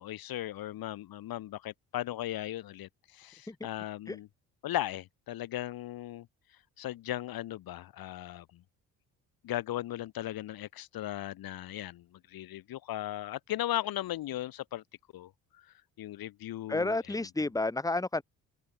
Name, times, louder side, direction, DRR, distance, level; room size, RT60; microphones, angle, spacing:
voice 1, 0.0-4.3 4.6-6.3 6.8-8.6 9.4-14.8 15.1-17.2, left 14 dB, 55° left, 1.1 m, -37 dB
voice 2, 16.7-18.2, left 2 dB, 10° left, 1.4 m, -30 dB
hypercardioid pair, 50°, 41 cm